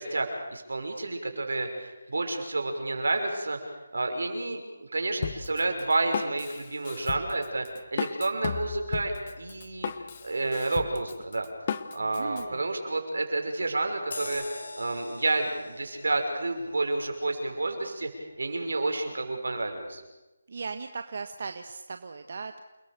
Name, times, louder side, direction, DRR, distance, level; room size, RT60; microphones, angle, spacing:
voice 1, 0.0-3.6 3.9-7.7 7.9-9.9 10.2-11.5 11.9-18.1 18.4-20.0, right 2 dB, 80° right, 5 dB, 6.0 m, -30 dB
Drum kit, 5.2-12.4, left 7 dB, 35° left, 1.3 m, -35 dB
voice 2, 12.0-12.7 20.5-22.6, right 4 dB, 55° right, 8 dB, 1.3 m, -38 dB
sound 1, 14.1-19.1 19.5-19.7, left 2 dB, 65° left, 6.9 m, -44 dB
29.0 x 21.0 x 6.9 m, 1.1 s
figure-of-eight pair, 165°, 0 cm